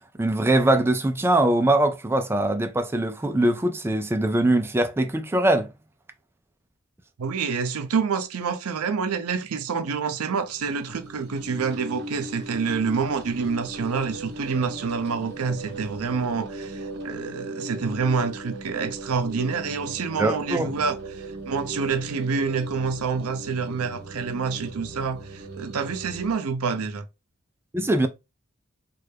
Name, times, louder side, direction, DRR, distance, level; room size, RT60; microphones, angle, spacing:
voice 1, 0.2-5.7 20.2-20.7 27.7-28.1, right 1 dB, 10° right, 0.3 m, -22 dB
voice 2, 7.2-27.1, right 5 dB, 90° right, 0.5 m, -27 dB
sound 1, 10.3-26.3, right 2 dB, 50° right, 0.7 m, -38 dB
3.2 x 2.3 x 3.3 m
head